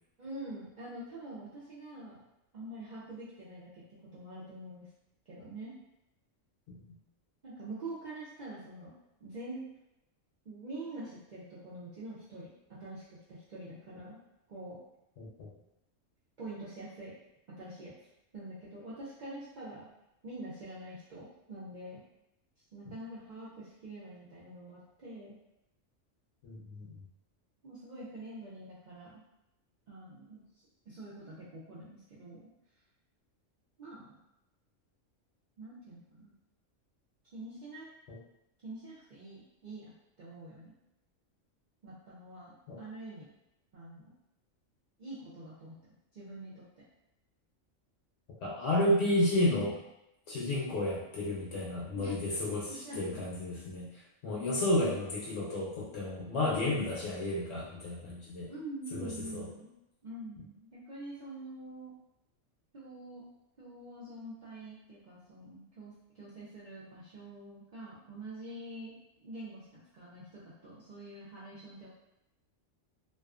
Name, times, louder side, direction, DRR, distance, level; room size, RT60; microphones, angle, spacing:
voice 1, 0.2-2.2 2.5-3.8 4.1-4.9 5.3-5.7 7.4-8.9 9.2-9.6 10.5-12.5 12.8-14.2 14.5-14.8 16.4-17.1 17.6-17.9 18.3-19.9 20.2-22.0 22.7-25.4 27.6-29.2 29.9-30.4 30.9-32.5 33.8-34.2 35.6-36.3 37.3-37.9 38.6-39.9 40.2-40.7 41.8-43.3 43.7-44.1 45.0-45.8 46.1-46.6 51.9-52.1 52.8-53.0 58.5-59.7 60.0-61.9 62.7-63.2 63.6-69.7 69.9-71.9, right 2 dB, 65° right, -9 dB, 0.4 m, -45 dB
voice 2, 15.2-15.5 26.4-27.0 38.1-38.2 42.7-42.8 48.4-49.8 50.3-53.9 54.2-58.5 58.9-59.5, left 1 dB, 70° left, -5 dB, 0.9 m, -32 dB
2.4 x 2.3 x 2.4 m, 0.88 s
omnidirectional pair, 1.3 m